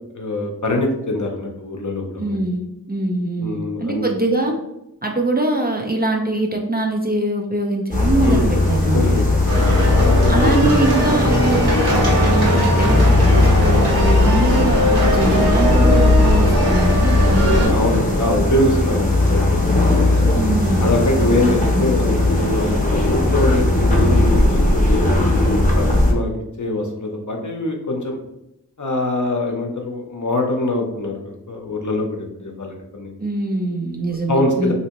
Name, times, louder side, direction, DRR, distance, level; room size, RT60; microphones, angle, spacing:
voice 1, 0.1-2.4 3.4-4.1 8.2-8.5 8.9-9.2 9.9-10.6 11.1-11.2 15.2-15.4 17.7-19.6 20.1-20.4 20.8-24.6 24.9-25.1 25.5-26.3 26.6-28.2 28.8-33.1 34.3-34.7, left 1 dB, 50° left, 1 dB, 0.7 m, -23 dB
voice 2, 2.2-4.5 5.0-9.2 10.3-17.8 20.3-21.6 33.2-34.7, right 2 dB, 25° right, 1 dB, 0.4 m, -23 dB
sound 1, 7.9-26.1, left 2 dB, 20° left, 0.8 m, -17 dB
sound 2, 9.5-17.7, equal, 70° right, 1.4 m, -20 dB
3.3 x 2.9 x 2.9 m, 0.87 s
wide cardioid pair, 45°, 39 cm